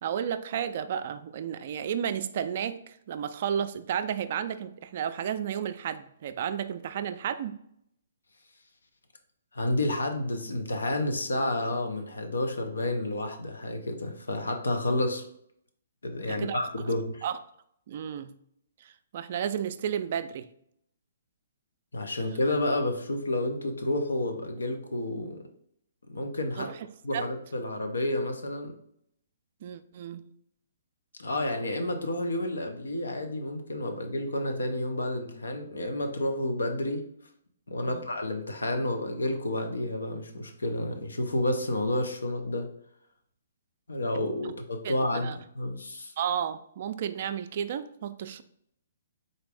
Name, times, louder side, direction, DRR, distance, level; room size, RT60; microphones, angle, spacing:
voice 1, 0.0-7.6 16.3-16.6 17.2-17.4 17.9-18.3 18.8-20.5 26.6-26.8 27.1-27.2 29.6-30.3 37.8-38.0 44.8-44.9 45.2-45.4 46.2-48.4, right 8 dB, 50° right, 11 dB, 0.3 m, -32 dB
voice 2, 9.5-15.3 16.0-17.2 21.9-25.4 26.1-26.7 27.0-28.7 31.2-37.0 37.7-42.7 43.9-46.1, left 1 dB, 90° left, 5 dB, 0.7 m, -30 dB
3.9 x 2.5 x 3.3 m, 0.70 s
hypercardioid pair, 140°, 0 cm